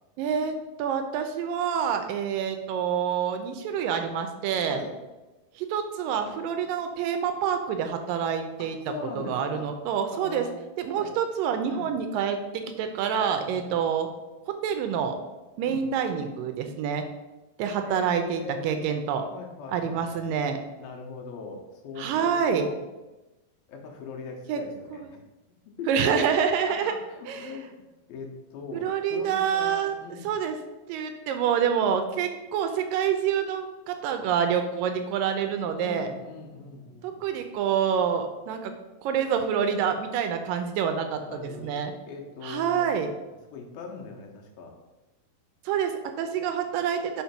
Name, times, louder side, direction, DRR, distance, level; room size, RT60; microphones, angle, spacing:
voice 1, 0.2-4.8 5.6-8.8 9.2-10.5 10.8-14.1 14.5-15.2 15.6-17.1 17.6-19.2 19.7-20.6 22.0-22.7 24.5-24.6 25.9-26.9 27.3-27.5 28.7-29.9 30.2-30.6 30.9-36.1 37.0-38.7 39.0-41.9 42.4-43.1 45.7-47.2, right 7 dB, 80° right, 7 dB, 2.2 m, -27 dB
voice 2, 8.6-9.7 10.1-10.6 10.9-11.1 11.7-12.0 13.5-13.7 15.6-15.9 17.7-18.9 19.3-20.5 20.8-22.8 23.7-25.2 25.5-25.9 26.7-30.4 35.7-37.4 41.0-42.9 43.5-44.8, left 4 dB, 90° left, 1 dB, 2.9 m, -40 dB
5.7 x 4.4 x 5.6 m, 1.1 s
omnidirectional pair, 4.2 m